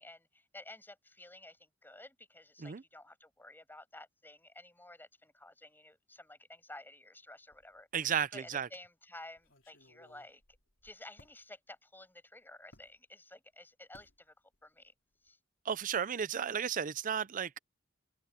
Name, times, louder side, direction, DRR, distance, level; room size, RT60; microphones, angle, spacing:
voice 1, 0.0-7.9 8.3-10.4 10.8-14.3 14.6-14.9 15.2-15.4, left 2 dB, 10° left, 6.2 m, -53 dB
sound 1, 7.5-8.1 8.5-8.6 9.4-11.4 12.7-13.0 13.9-14.2 14.5-14.9 15.1-15.3, left 1 dB, 70° left, 3.3 m, -63 dB
voice 2, 7.9-8.7 15.7-17.6, right 8 dB, 40° right, 0.5 m, -33 dB
head